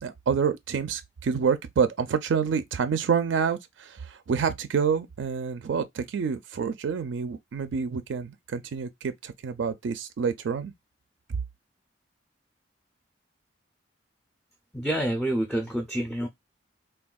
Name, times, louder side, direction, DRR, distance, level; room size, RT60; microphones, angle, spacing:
voice 1, 0.0-10.7, right 6 dB, 85° right, 0.4 m, -28 dB
voice 2, 14.7-16.3, right 1 dB, ahead, 0.4 m, -27 dB
3.4 x 2.2 x 2.2 m
head